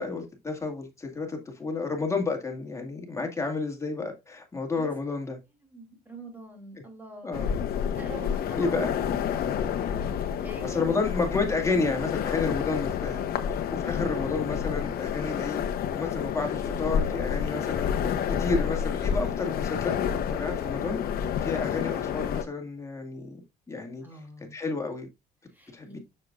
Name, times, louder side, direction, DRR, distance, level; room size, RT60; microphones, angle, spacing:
voice 1, 0.0-5.4 7.2-7.5 8.6-8.9 10.6-13.2 13.5-15.6 15.9-17.9 18.4-23.4 23.7-24.0 24.5-25.1 25.7-26.0, left 3 dB, 15° left, 2.1 m, -31 dB
voice 2, 5.2-7.3 7.9-9.7 10.1-11.3 15.2-15.5 24.0-24.6 25.5-26.0, right 1 dB, 10° right, 3.0 m, -45 dB
sound 1, 7.3-22.4, left 8 dB, 65° left, 1.0 m, -29 dB
6.9 x 6.6 x 2.5 m
cardioid pair, 110°, 17 cm